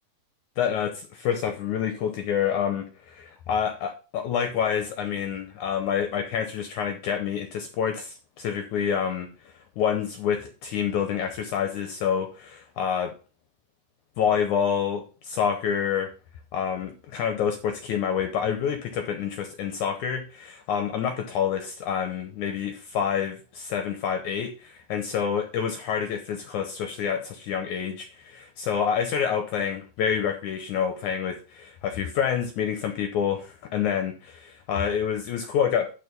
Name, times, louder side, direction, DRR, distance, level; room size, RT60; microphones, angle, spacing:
voice 1, 0.6-13.1 14.2-16.1 16.5-35.9, left 8 dB, 70° left, 6 dB, 1.9 m, -28 dB
11.0 x 4.2 x 5.3 m, 0.34 s
omnidirectional pair, 4.3 m